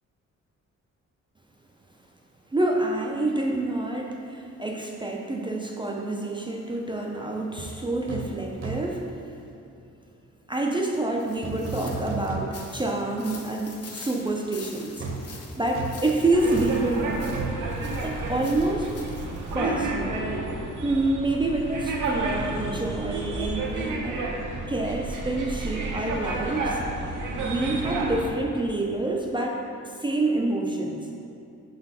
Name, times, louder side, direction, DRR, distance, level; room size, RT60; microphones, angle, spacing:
voice 1, 2.5-9.1 10.5-15.1 15.6-17.4 18.0-18.9 19.5-20.3 20.8-24.2 24.7-26.8 27.4-31.1, right 2 dB, 15° right, -1 dB, 0.4 m, -27 dB
sound 1, 7.6-7.7 8.1-8.3 8.6-9.0 11.4-12.9 13.2-13.3 15.0-18.7 18.9-19.1, right 3 dB, 45° right, 0.8 m, -35 dB
sound 2, 11.2-19.6, left 4 dB, 55° left, 0.7 m, -46 dB
sound 3, 16.3-28.3, right 2 dB, 90° right, 0.9 m, -31 dB
5.6 x 4.0 x 5.4 m, 2.6 s
wide cardioid pair, 155°, 30 cm